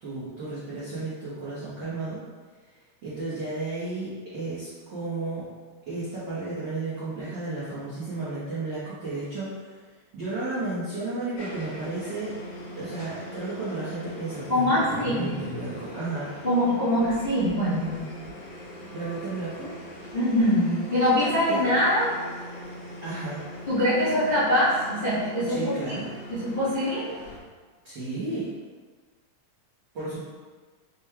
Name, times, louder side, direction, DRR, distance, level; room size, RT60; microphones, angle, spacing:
voice 1, 0.0-2.2 3.0-5.5 5.9-12.4 12.7-16.3 18.9-19.7 21.5-21.6 23.0-23.4 25.5-26.1 27.8-28.5 29.9-30.1, right 2 dB, 70° right, -10 dB, 1.0 m, -33 dB
sound 1, 11.4-27.4, equal, 80° left, 2.2 m, -41 dB
voice 2, 14.5-15.3 16.4-18.0 20.1-22.1 23.7-25.7 26.3-27.1, left 1 dB, 35° left, -12 dB, 0.7 m, -23 dB
6.0 x 2.2 x 3.4 m, 1.4 s
omnidirectional pair, 3.4 m